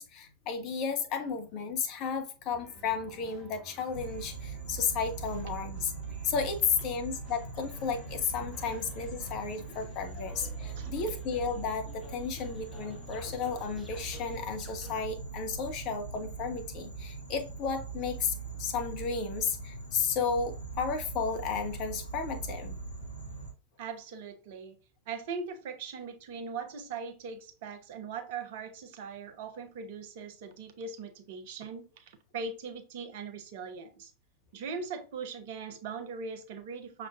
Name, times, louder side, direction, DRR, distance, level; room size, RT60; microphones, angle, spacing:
voice 1, 0.0-22.7, left 5 dB, 40° left, 1.1 m, -33 dB
sound 1, 2.5-9.7, right 3 dB, 20° right, 1.7 m, -52 dB
sound 2, 3.9-23.5, right 4 dB, 80° left, 0.9 m, -41 dB
sound 3, 7.7-15.0, left 2 dB, 10° left, 1.2 m, -52 dB
voice 2, 23.8-24.8 25.1-34.1 34.5-37.1, right 5 dB, 50° right, 0.9 m, -40 dB
6.3 x 3.5 x 2.4 m
figure-of-eight pair, 90°, 0 cm